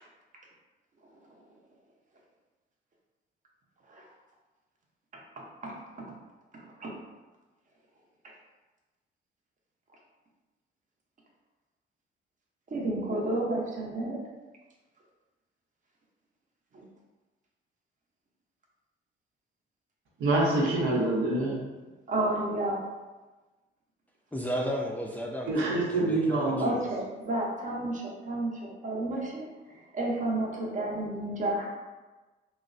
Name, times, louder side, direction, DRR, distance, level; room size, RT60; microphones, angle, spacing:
voice 1, 5.4-6.1 6.5-7.0 12.7-14.2 16.7-16.9 22.1-22.9 26.6-31.7, right 2 dB, 40° right, -2 dB, 0.7 m, -32 dB
voice 2, 20.2-21.6 25.5-26.8, right 2 dB, 85° right, -4 dB, 0.8 m, -26 dB
voice 3, 24.3-26.8, equal, 10° left, -2 dB, 0.4 m, -34 dB
3.0 x 2.0 x 2.5 m, 1.2 s
cardioid pair, 90°, 20 cm